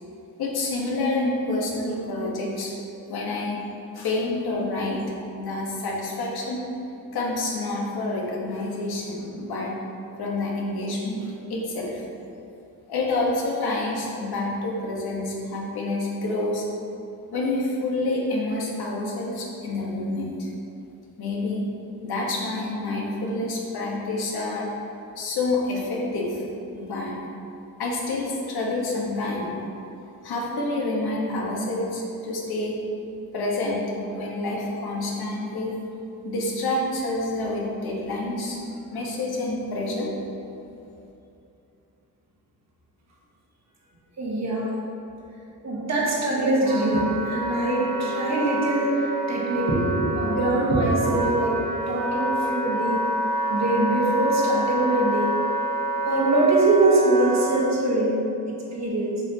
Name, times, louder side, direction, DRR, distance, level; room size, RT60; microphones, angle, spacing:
voice 1, 0.4-2.7 3.1-3.6 3.9-5.0 5.4-6.6 7.1-9.7 10.2-12.0 12.9-16.6 17.3-20.5 21.2-21.6 22.0-24.7 25.2-26.4 26.7-27.2 27.8-29.8 30.2-32.8 33.3-35.7 36.2-38.6 38.9-40.1, left 2 dB, 90° left, -3 dB, 1.4 m, -28 dB
voice 2, 44.2-44.7 45.6-49.0 49.3-51.6 51.9-53.0 53.5-55.3 56.0-58.2 58.5-59.2, right 2 dB, 45° right, -4 dB, 1.4 m, -23 dB
Wind instrument woodwind instrument, 46.1-57.7, right 1 dB, 90° right, 0.9 m, -28 dB
7.5 x 6.1 x 2.9 m, 2.8 s
wide cardioid pair, 160°, 37 cm